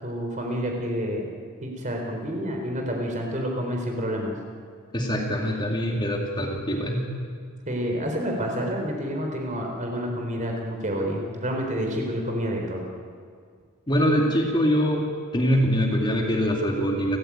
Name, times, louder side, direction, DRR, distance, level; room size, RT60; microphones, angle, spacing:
voice 1, 0.0-1.3 1.6-4.3 7.7-12.9, equal, 35° right, 1 dB, 4.2 m, -29 dB
voice 2, 4.9-7.1 13.9-17.2, equal, 20° left, 0 dB, 2.4 m, -23 dB
29.5 x 14.5 x 8.8 m, 2.1 s
head